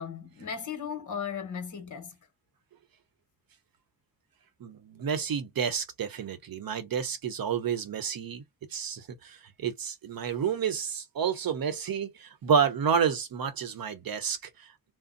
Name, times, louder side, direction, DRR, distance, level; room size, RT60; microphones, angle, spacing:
voice 1, 0.0-2.2, left 7 dB, 50° left, 1.2 m, -36 dB
voice 2, 4.6-8.4 8.7-14.7, right 7 dB, 60° right, 0.9 m, -30 dB
2.6 x 2.1 x 3.9 m
cardioid pair, 95°, 39 cm